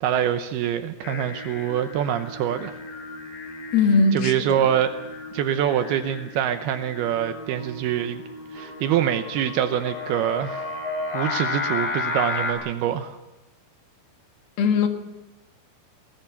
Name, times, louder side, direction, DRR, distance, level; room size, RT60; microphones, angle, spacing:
voice 1, 0.0-2.7 4.1-4.9 5.3-8.2 8.5-10.7 11.1-13.2, right 10 dB, 80° right, 9 dB, 2.8 m, -25 dB
Singing, 1.0-12.5, left 3 dB, 90° left, 6.1 m, -33 dB
voice 2, 3.7-4.6 14.6-14.9, left 4 dB, 70° left, 5 dB, 3.7 m, -20 dB
23.5 x 19.0 x 7.0 m, 1.0 s
omnidirectional pair, 4.6 m